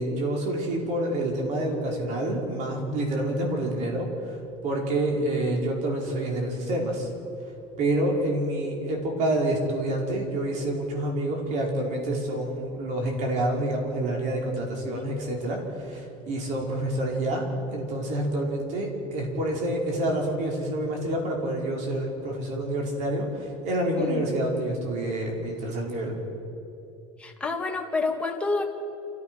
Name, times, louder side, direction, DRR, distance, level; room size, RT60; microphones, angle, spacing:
voice 1, 0.0-7.1 7.8-17.4 17.7-26.2, right 1 dB, 50° right, 0 dB, 5.1 m, -28 dB
voice 2, 27.2-28.7, left 3 dB, 5° left, 1 dB, 2.1 m, -28 dB
29.0 x 15.0 x 6.3 m, 2.9 s
cardioid pair, 145°, 15 cm